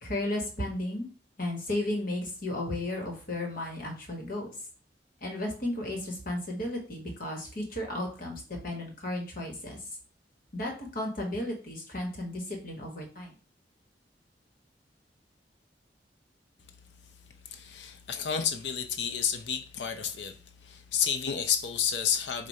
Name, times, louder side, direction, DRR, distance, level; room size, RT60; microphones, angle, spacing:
voice 1, 0.0-1.1 1.4-4.5 5.2-9.8 10.5-13.3, left 1 dB, 55° left, 1.5 m, -34 dB
voice 2, 17.5-20.3 20.6-22.5, left 7 dB, 80° left, 0.6 m, -30 dB
4.9 x 2.6 x 4.2 m
head